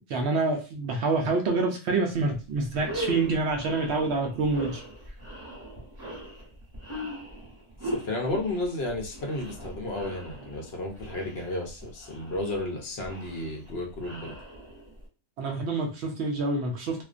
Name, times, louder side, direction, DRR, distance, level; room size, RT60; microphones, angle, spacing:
voice 1, 0.1-4.8 15.4-17.0, right 3 dB, 70° right, 3 dB, 0.8 m, -27 dB
sound 1, 2.2-2.3 2.7-15.1, right 1 dB, 20° right, 1.0 m, -40 dB
voice 2, 7.8-14.4, left 2 dB, 65° left, 0 dB, 0.8 m, -33 dB
2.4 x 2.1 x 2.4 m, 0.32 s
omnidirectional pair, 1.3 m